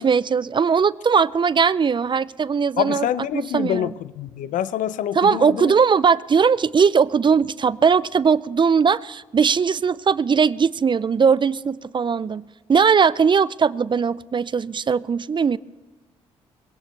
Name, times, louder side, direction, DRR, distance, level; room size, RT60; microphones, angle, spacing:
voice 1, 0.0-3.1 3.3-3.9 5.1-12.4 12.7-15.6, right 6 dB, 35° right, 19 dB, 0.5 m, -19 dB
voice 2, 2.8-5.7, left 11 dB, 70° left, 16 dB, 0.6 m, -26 dB
22.0 x 17.0 x 3.3 m, 1.3 s
hypercardioid pair, 50°, 14 cm